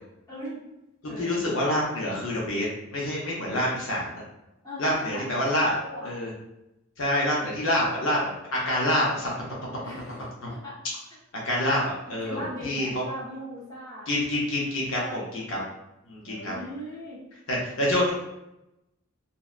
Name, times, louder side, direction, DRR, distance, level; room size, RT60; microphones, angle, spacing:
voice 1, 0.3-0.6 1.0-1.3 4.6-6.1 9.8-10.8 12.2-14.1 14.9-15.3 16.2-17.2, equal, 20° left, -8 dB, 0.9 m, -39 dB
voice 2, 1.2-4.2 4.8-5.7 6.0-6.3 7.0-8.2 8.5-9.3 10.4-10.5 11.4-13.0 14.1-15.6 16.1-16.5 17.5-18.1, left 1 dB, 70° left, -4 dB, 0.6 m, -27 dB
2.6 x 2.1 x 2.3 m, 0.91 s
head